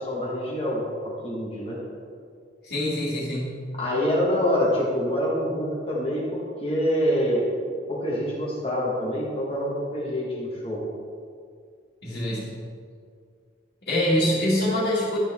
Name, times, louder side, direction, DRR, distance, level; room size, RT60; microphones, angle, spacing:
voice 1, 0.0-1.8 3.8-7.5 7.9-10.8, equal, 30° left, -4 dB, 1.5 m, -26 dB
voice 2, 2.6-3.6 12.0-12.5 13.8-15.2, left 1 dB, 55° left, -11 dB, 2.2 m, -25 dB
12.0 x 6.9 x 3.6 m, 2.2 s
head